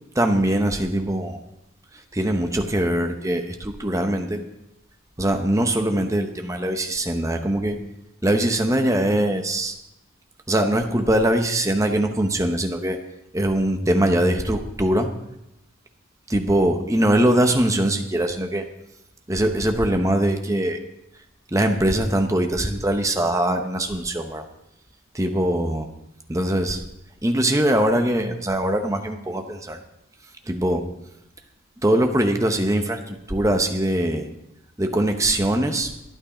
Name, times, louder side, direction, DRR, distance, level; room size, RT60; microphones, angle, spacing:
voice 1, 0.2-1.4 2.1-4.4 5.2-7.8 8.2-9.7 10.5-13.0 13.3-15.1 16.3-18.6 19.3-20.8 21.5-24.4 25.1-25.9 26.3-26.8 27.2-29.8 30.5-30.8 31.8-34.3 34.8-35.9, right 1 dB, 15° right, 5 dB, 0.8 m, -22 dB
12.0 x 9.5 x 5.0 m, 0.88 s
head